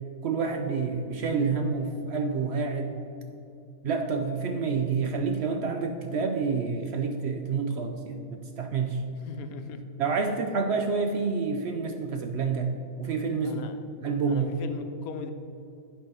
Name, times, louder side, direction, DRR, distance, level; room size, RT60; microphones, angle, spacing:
voice 1, 0.2-3.0 3.8-9.0 10.0-12.7 13.0-13.6 14.0-14.5, right 5 dB, 65° right, 5 dB, 0.7 m, -28 dB
voice 2, 9.2-9.8 13.4-13.8 14.3-15.3, left 6 dB, 80° left, 7 dB, 1.1 m, -39 dB
9.1 x 4.6 x 5.8 m, 2.6 s
omnidirectional pair, 1.5 m